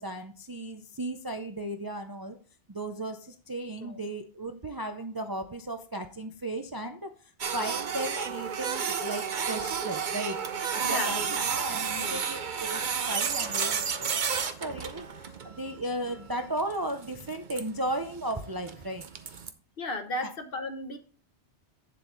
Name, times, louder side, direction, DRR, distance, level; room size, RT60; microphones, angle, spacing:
voice 1, 0.0-2.4 2.7-10.4 10.8-14.1 14.3-19.4 20.2-20.3, right 1 dB, 25° right, 6 dB, 0.5 m, -36 dB
Printer, 7.4-19.5, right 6 dB, 50° right, 0.9 m, -32 dB
voice 2, 10.8-11.4 11.9-12.2 19.8-21.0, left 2 dB, 55° left, 6 dB, 1.3 m, -35 dB
8.1 x 7.6 x 3.9 m, 0.38 s
omnidirectional pair, 1.2 m